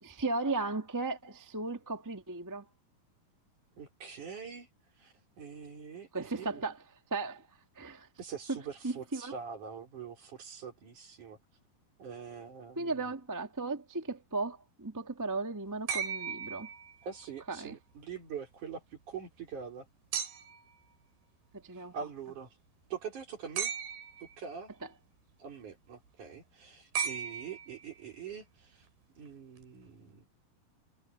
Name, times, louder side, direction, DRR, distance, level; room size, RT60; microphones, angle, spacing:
voice 1, 0.0-2.7 6.1-6.8 7.1-7.5 7.7-8.1 8.5-8.6 8.8-9.3 12.7-16.7 17.5-17.7 21.5-21.9 24.8-24.9, right 3 dB, 10° right, 0.8 m, -36 dB
voice 2, 3.8-4.7 5.0-6.6 8.2-11.4 12.0-12.9 17.0-19.9 21.9-22.5 22.9-23.7 24.4-24.7 25.4-28.9 29.2-30.3, right 7 dB, 55° right, 5.6 m, -44 dB
sound 1, 15.9-17.3 20.1-20.7 23.6-24.4 26.9-28.0 29.6-29.7, right 7 dB, 90° right, 5.4 m, -36 dB
omnidirectional pair, 4.3 m